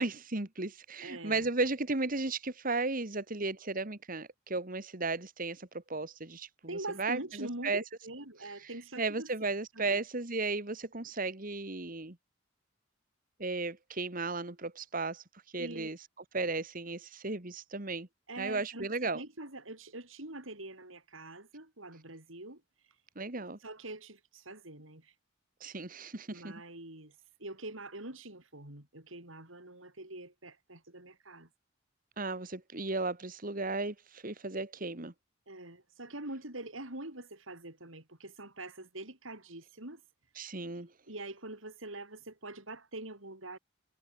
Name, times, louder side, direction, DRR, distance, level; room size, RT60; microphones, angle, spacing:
voice 1, 0.0-6.5 7.0-7.2 7.6-7.8 8.6-8.7 9.0-12.2 13.4-15.2 15.5-16.0 16.3-18.1 18.4-19.2 23.2-23.6 25.6-26.6 32.2-35.1 40.4-40.9, right 3 dB, 45° right, 2.0 m, -35 dB
voice 2, 1.0-1.5 6.6-9.3 9.7-10.0 15.6-15.9 18.3-22.6 23.6-25.1 26.3-31.5 35.5-40.0 41.1-43.6, right 2 dB, 85° right, 7.3 m, -44 dB
head